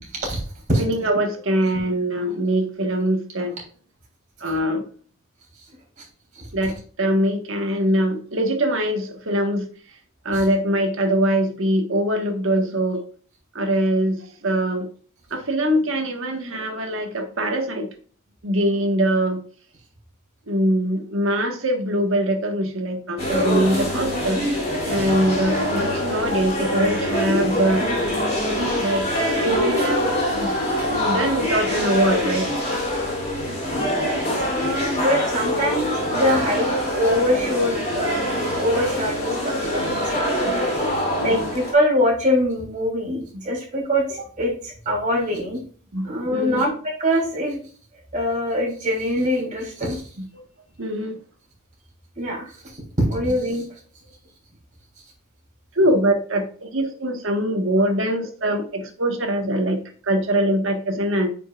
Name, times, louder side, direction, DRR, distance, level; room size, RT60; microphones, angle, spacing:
voice 1, 0.8-3.6 4.4-4.9 6.5-9.7 10.2-13.0 13.5-14.9 15.3-17.9 18.4-19.4 20.5-24.5 24.9-27.9 28.7-29.1 29.4-30.5 30.9-32.5 40.4-40.5 41.2-41.5 43.3-43.4 45.9-46.6 50.2-50.4 50.8-51.2 55.7-61.3, right 1 dB, 60° right, 4 dB, 1.5 m, -23 dB
sound 1, 23.2-41.7, equal, 30° left, 3.0 m, -24 dB
voice 2, 34.0-36.7 36.9-40.6 41.2-45.6 46.0-47.6 48.1-50.0 52.2-52.5 53.1-53.6, equal, 35° right, -2 dB, 3.3 m, -23 dB
9.2 x 5.5 x 2.4 m, 0.43 s
head